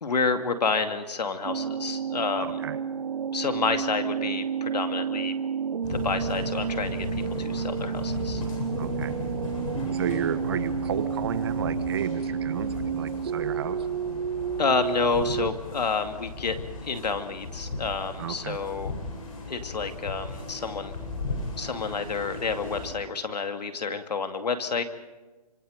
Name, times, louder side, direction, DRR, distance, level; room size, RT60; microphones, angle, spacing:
voice 1, 0.0-2.6 3.3-5.3 5.9-8.4 14.6-16.6 16.8-18.9 19.5-21.0 21.6-24.8, left 4 dB, 90° left, 7 dB, 2.4 m, -29 dB
sound 1, 1.4-15.5, right 7 dB, 65° right, 0.7 m, -31 dB
sound 2, 5.8-22.9, left 3 dB, 55° left, 7.9 m, -36 dB
voice 2, 8.8-9.2 9.9-13.8 18.2-18.6, right 9 dB, 40° right, 11 dB, 1.3 m, -32 dB
26.0 x 25.5 x 5.2 m, 1.2 s
hypercardioid pair, 165°, 20 cm